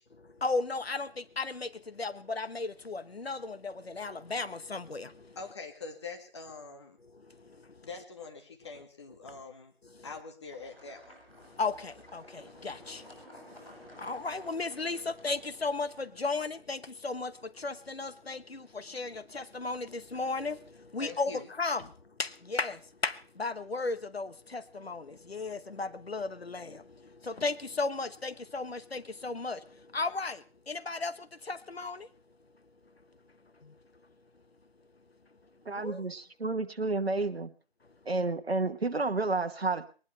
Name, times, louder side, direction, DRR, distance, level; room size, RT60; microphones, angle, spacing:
voice 1, 0.2-5.4 7.1-7.9 9.8-10.0 11.4-21.9 22.2-32.1 33.6-33.8 35.7-36.0, left 3 dB, 75° left, 1.3 m, -35 dB
voice 2, 5.4-7.0 7.8-9.7 10.0-11.2 21.0-21.5, left 4 dB, 25° left, 2.0 m, -44 dB
sound 1, 10.5-16.0, equal, 5° left, 4.3 m, -54 dB
voice 3, 35.7-37.5 38.1-40.0, right 3 dB, 80° right, 1.2 m, -31 dB
20.5 x 19.5 x 3.4 m
figure-of-eight pair, 160°, 31 cm